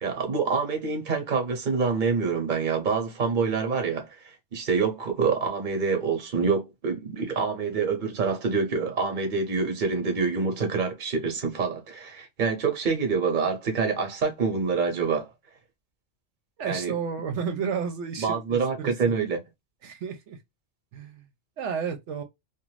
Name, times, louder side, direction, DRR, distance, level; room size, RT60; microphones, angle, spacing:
voice 1, 0.0-15.3 16.6-17.0 18.2-19.4, right 5 dB, 45° right, 0.9 m, -26 dB
voice 2, 16.6-18.9 19.8-20.4 20.9-21.2 21.6-22.2, right 6 dB, 75° right, 0.9 m, -32 dB
2.5 x 2.3 x 3.1 m
omnidirectional pair, 1.2 m